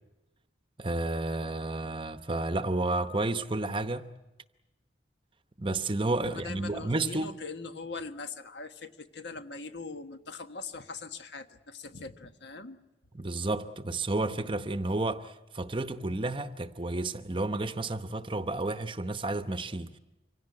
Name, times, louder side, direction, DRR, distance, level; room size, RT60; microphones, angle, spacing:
voice 1, 0.8-4.1 5.6-7.4 13.1-20.0, right 2 dB, 25° right, 0.8 m, -31 dB
voice 2, 6.3-12.8, left 4 dB, 70° left, 1.4 m, -41 dB
25.5 x 17.0 x 9.7 m
head